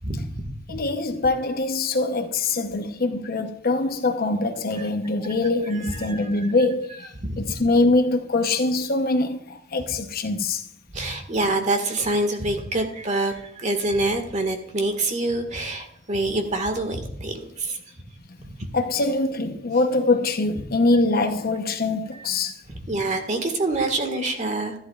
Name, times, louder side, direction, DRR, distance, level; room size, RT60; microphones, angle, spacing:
voice 1, 0.0-0.4 0.7-0.8 4.8-4.9 5.7-6.3 7.2-7.4 10.9-17.8 18.4-18.7 22.7-24.7, right 2 dB, 40° right, 1.7 m, -26 dB
voice 2, 0.7-10.6 18.7-22.5, left 2 dB, 50° left, 0.9 m, -23 dB
13.5 x 11.5 x 2.4 m
head